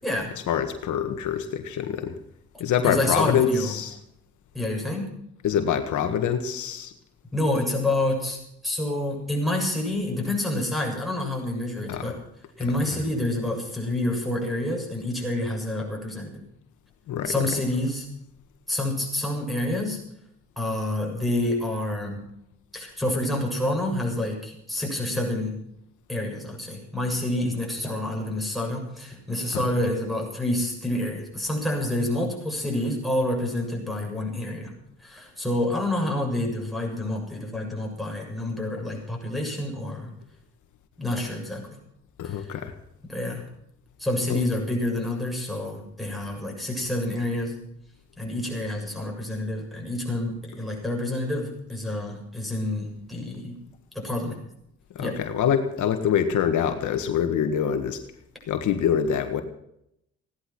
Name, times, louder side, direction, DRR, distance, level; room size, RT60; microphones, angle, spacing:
voice 1, 0.5-2.2 2.6-3.9 5.4-6.9 11.9-12.1 12.9-13.0 17.1-17.3 29.5-29.6 42.2-42.7 44.3-44.4 54.9-58.0 58.5-59.4, left 8 dB, 80° left, 7 dB, 1.7 m, -25 dB
voice 2, 2.8-3.7 4.5-5.1 7.3-12.2 12.6-16.4 17.3-18.1 18.7-20.0 20.6-22.2 22.7-25.6 26.1-34.7 35.0-40.1 41.0-41.8 42.2-42.5 43.1-43.4 44.0-47.6 48.2-53.6 53.9-54.4 55.0-55.2, left 1 dB, ahead, -1 dB, 7.1 m, -28 dB
16.5 x 11.5 x 6.1 m, 0.76 s
cardioid pair, 90°, 30 cm